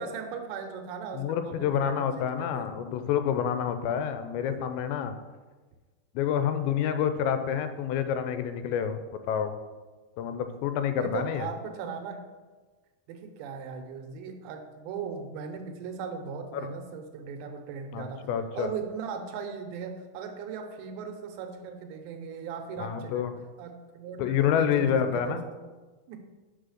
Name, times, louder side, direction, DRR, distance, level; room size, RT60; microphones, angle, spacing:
voice 1, 0.0-2.7 10.9-12.2 13.1-18.3 18.5-23.3 23.6-25.4 26.1-26.2, right 6 dB, 80° right, 5 dB, 2.8 m, -38 dB
voice 2, 1.1-5.1 6.2-9.0 9.3-9.6 10.2-11.5 16.5-16.7 17.9-18.7 22.8-23.3 24.2-25.4, left 8 dB, 85° left, 9 dB, 2.8 m, -28 dB
6.2 x 5.1 x 6.3 m, 1.3 s
omnidirectional pair, 5.1 m